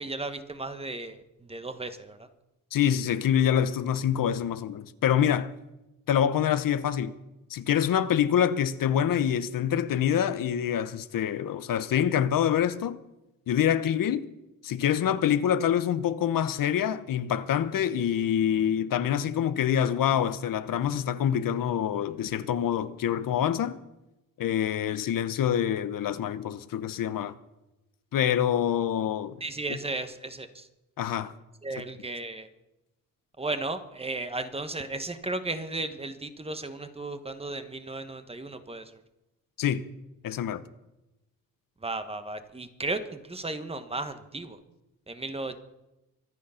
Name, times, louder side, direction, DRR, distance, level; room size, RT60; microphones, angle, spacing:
voice 1, 0.0-2.3 29.4-30.7 31.6-32.5 33.4-38.9 41.8-44.6 45.1-45.6, right 2 dB, 15° right, 1.2 m, -35 dB
voice 2, 2.7-5.5 6.1-7.1 7.5-13.0 13.5-14.3 14.6-23.8 24.4-27.3 28.1-29.4 29.7-29.8 31.0-31.3 39.6-39.9 40.2-40.6, left 9 dB, 75° left, 0.9 m, -26 dB
24.5 x 9.4 x 5.7 m
wide cardioid pair, 135°, 34 cm